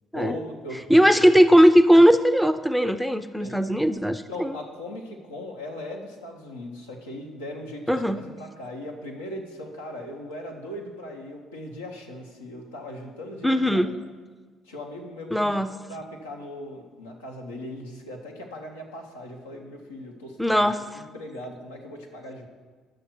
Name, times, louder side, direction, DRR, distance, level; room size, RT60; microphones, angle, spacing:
voice 1, 0.1-1.1 3.4-3.6 4.3-14.0 14.7-22.5, left 1 dB, 90° left, -1 dB, 1.0 m, -39 dB
voice 2, 0.9-4.5 7.9-8.2 13.4-13.9 15.3-15.7 20.4-20.8, equal, ahead, 11 dB, 0.5 m, -18 dB
9.5 x 6.5 x 4.4 m, 1.4 s
hypercardioid pair, 50°, 0 cm